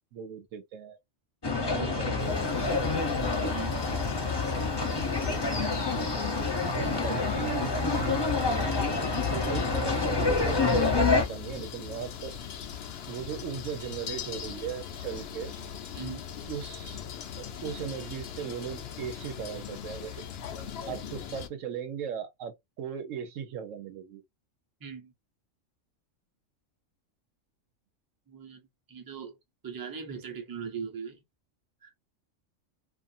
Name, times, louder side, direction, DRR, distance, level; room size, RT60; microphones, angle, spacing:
voice 1, 0.1-1.0 1.8-2.7 7.0-8.8 9.1-12.3 13.1-15.5 16.5-17.0 17.4-20.2 20.8-24.2, right 8 dB, 90° right, 1.0 m, -38 dB
sound 1, 1.4-11.2, left 3 dB, 25° left, 0.7 m, -27 dB
voice 2, 1.5-1.9 3.5-3.7 15.9-16.3 24.8-25.1 28.3-28.6 28.9-29.3 29.6-31.2 31.8-31.9, right 6 dB, 20° right, 0.6 m, -39 dB
sound 2, 2.2-21.5, left 8 dB, 65° left, 0.7 m, -40 dB
2.6 x 2.5 x 2.5 m
omnidirectional pair, 1.3 m